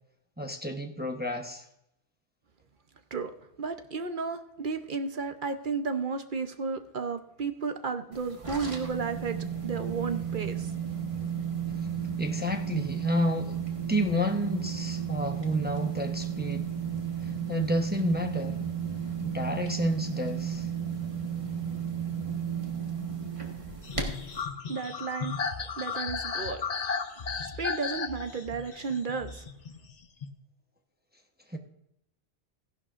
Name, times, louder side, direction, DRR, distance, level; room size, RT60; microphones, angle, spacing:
voice 1, 0.4-1.6 12.2-16.9 17.2-18.6 19.2-20.7 31.5-31.6, equal, 10° right, 0.8 m, -30 dB
voice 2, 3.6-10.7 24.7-25.4 25.8-26.6 27.6-29.4, right 5 dB, 50° right, 0.9 m, -33 dB
sound 1, 8.1-24.4, right 7 dB, 30° right, 1.5 m, -33 dB
sound 2, 23.8-30.3, left 5 dB, 45° left, 0.7 m, -35 dB
15.5 x 11.0 x 2.5 m
omnidirectional pair, 1.1 m